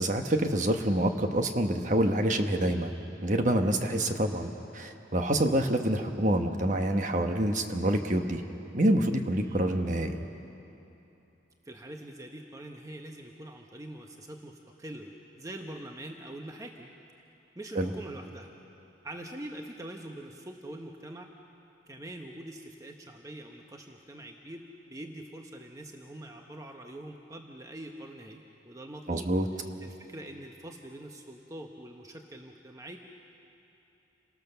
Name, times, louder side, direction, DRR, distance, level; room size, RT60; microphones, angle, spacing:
voice 1, 0.0-2.9 3.2-8.4 8.7-10.2 17.7-17.9 29.1-29.4, right 1 dB, 40° right, 5 dB, 1.2 m, -27 dB
voice 2, 11.6-16.9 17.5-18.5 19.0-21.3 21.9-29.3 29.8-33.0, right 1 dB, 15° right, 2 dB, 1.0 m, -44 dB
28.5 x 18.5 x 6.9 m, 2.9 s
head